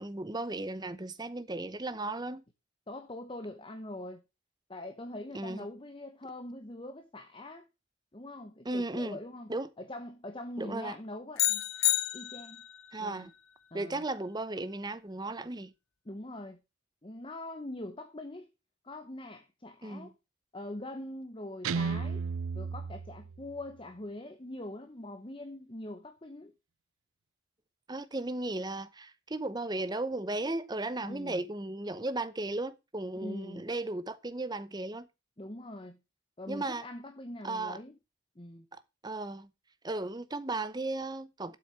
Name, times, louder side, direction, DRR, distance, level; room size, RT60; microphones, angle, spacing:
voice 1, 0.0-2.4 5.3-5.6 8.6-9.2 9.5-9.7 10.6-11.0 12.9-13.3 13.7-15.7 19.8-20.1 27.9-35.1 36.5-36.9 37.4-37.8 38.7-39.5 39.8-41.6, right 2 dB, 20° right, 0.7 m, -35 dB
voice 2, 2.9-4.2 4.7-7.6 8.1-11.6 12.1-12.6 13.0-13.3 13.7-14.0 16.0-16.6 17.0-18.5 18.8-20.1 20.5-22.2 22.5-26.5 31.0-31.4 33.2-33.6 35.4-36.0 36.4-38.0 38.4-38.7, left 1 dB, 25° left, 0.9 m, -43 dB
sound 1, 11.4-12.8, left 15 dB, 75° left, 0.9 m, -29 dB
Guitar, 21.6-23.7, right 5 dB, 80° right, 0.6 m, -34 dB
8.0 x 6.2 x 7.5 m
head